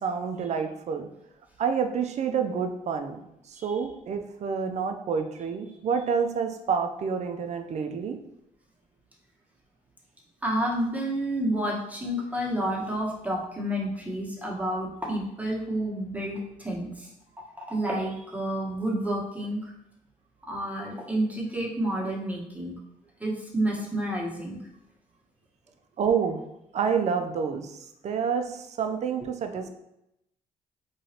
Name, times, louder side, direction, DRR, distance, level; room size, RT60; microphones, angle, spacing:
voice 1, 0.0-1.1 1.6-3.2 3.5-8.2 26.0-26.4 26.7-29.7, right 6 dB, 50° right, 6 dB, 0.5 m, -28 dB
voice 2, 10.4-17.1 17.7-19.7 20.5-22.7 23.2-24.6, right 1 dB, 10° right, -4 dB, 1.2 m, -30 dB
3.9 x 3.1 x 2.8 m, 0.83 s
cardioid pair, 85°, 14 cm